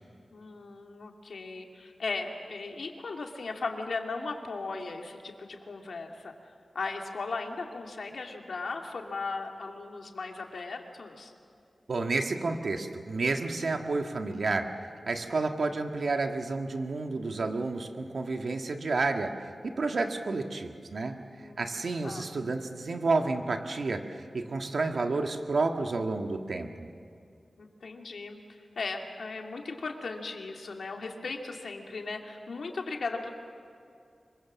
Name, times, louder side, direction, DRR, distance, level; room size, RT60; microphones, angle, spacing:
voice 1, 0.3-6.3 6.7-11.3 21.4-22.3 27.6-28.4 28.8-33.3, left 3 dB, 90° left, 2 dB, 2.5 m, -37 dB
voice 2, 11.9-14.7 15.1-19.3 19.6-26.9, right 3 dB, 75° right, 5 dB, 1.7 m, -30 dB
25.5 x 23.5 x 7.4 m, 2.5 s
wide cardioid pair, 110°, 0 cm